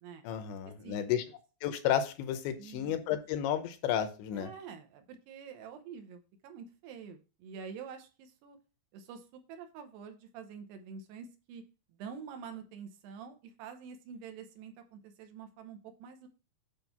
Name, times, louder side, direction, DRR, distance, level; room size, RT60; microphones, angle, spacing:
voice 1, 0.2-1.2 1.6-4.5, left 10 dB, 80° left, 8 dB, 3.0 m, -32 dB
voice 2, 2.6-3.1 4.3-8.6 8.9-11.6 12.0-16.3, right 6 dB, 75° right, 6 dB, 2.7 m, -47 dB
9.0 x 3.3 x 5.7 m, 0.33 s
omnidirectional pair, 5.3 m